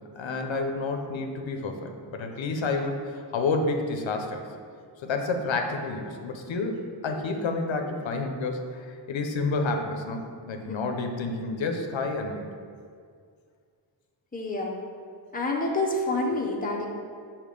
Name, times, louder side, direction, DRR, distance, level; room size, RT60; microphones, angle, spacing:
voice 1, 0.2-4.4 5.0-12.5, left 3 dB, 85° left, 4 dB, 0.7 m, -29 dB
voice 2, 14.3-14.8 15.3-16.9, left 2 dB, 20° left, -1 dB, 0.7 m, -28 dB
6.6 x 2.9 x 5.1 m, 2.2 s
wide cardioid pair, 130°, 45 cm